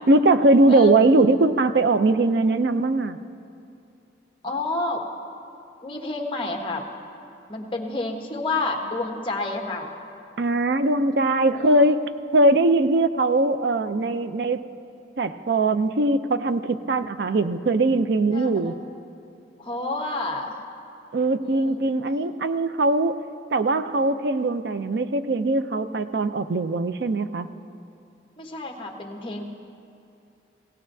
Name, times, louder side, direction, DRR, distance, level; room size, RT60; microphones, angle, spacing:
voice 1, 0.1-3.2 10.4-12.0 12.3-14.7 15.2-18.8 21.1-23.2 23.5-27.5, right 2 dB, 65° right, 11 dB, 0.5 m, -21 dB
voice 2, 4.4-5.0 5.8-6.8 7.5-9.9 11.6-11.7 18.3-18.8 19.6-20.5 21.4-21.8 28.4-29.4, left 2 dB, 30° left, 1 dB, 1.1 m, -29 dB
19.0 x 16.5 x 2.7 m, 2.7 s
head